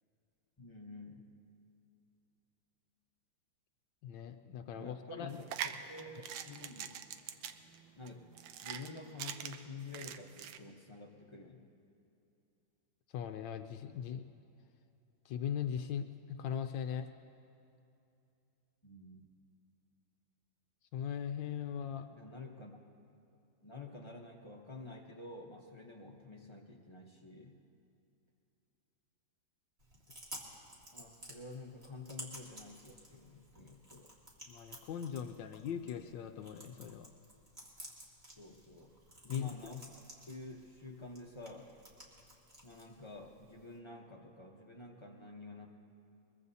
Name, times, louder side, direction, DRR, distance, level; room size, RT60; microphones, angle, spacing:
voice 1, 0.6-1.2 4.7-6.9 8.0-8.2 8.6-11.6 18.8-19.3 22.1-22.8 23.6-27.6 30.9-34.1 38.4-38.9 39.2-39.9 40.3-41.7 42.6-45.7, left 3 dB, 45° left, 0 dB, 0.3 m, -49 dB
voice 2, 4.0-5.3 13.1-14.2 15.3-17.1 20.9-22.1 34.5-37.1 39.3-39.7, left 8 dB, 75° left, 7 dB, 1.2 m, -39 dB
sound 1, 5.3-10.6, right 9 dB, 80° right, 1.4 m, -43 dB
Chewing mastication, 29.8-43.8, right 1 dB, 30° right, 2.2 m, -54 dB
23.0 x 21.5 x 2.7 m, 2.7 s
omnidirectional pair, 2.2 m